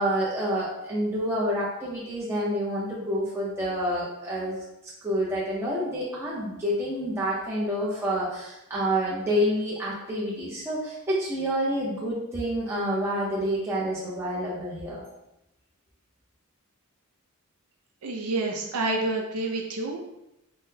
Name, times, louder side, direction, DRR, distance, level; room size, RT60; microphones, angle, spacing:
voice 1, 0.0-4.6 5.0-15.0, equal, 10° right, -8 dB, 0.5 m, -28 dB
voice 2, 18.0-20.0, right 2 dB, 85° right, 1 dB, 0.4 m, -28 dB
3.7 x 2.0 x 2.7 m, 0.88 s
head